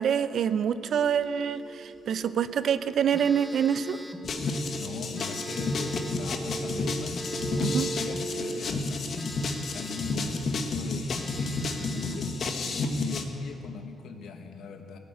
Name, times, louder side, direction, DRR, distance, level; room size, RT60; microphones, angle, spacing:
voice 1, 0.0-4.0 7.6-7.9, right 8 dB, 65° right, 13 dB, 0.6 m, -26 dB
sound 1, 0.8-8.6, right 2 dB, 25° right, 1.3 m, -39 dB
Telephone, 3.1-4.3 5.1-6.3 7.1-8.3 9.1-10.3 10.7-10.8 11.1-12.3, equal, 5° right, 1.2 m, -44 dB
sound 2, 4.2-13.2, left 3 dB, 55° left, 1.4 m, -31 dB
voice 2, 4.6-9.3 9.7-12.3 12.9-15.0, left 5 dB, 75° left, 5 dB, 1.4 m, -40 dB
18.5 x 8.4 x 8.0 m, 2.9 s
cardioid pair, 90°, 0 cm